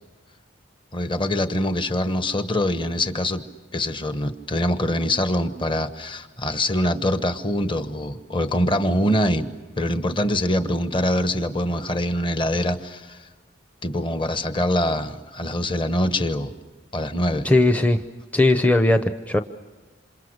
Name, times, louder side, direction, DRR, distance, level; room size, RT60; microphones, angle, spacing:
voice 1, 0.9-3.4 3.7-9.5 9.8-13.2 13.8-16.5 16.9-17.5, left 1 dB, 25° left, 9 dB, 1.2 m, -24 dB
voice 2, 17.4-18.0 18.3-19.4, left 2 dB, 10° left, 8 dB, 0.7 m, -18 dB
28.0 x 27.0 x 6.6 m, 1.2 s
head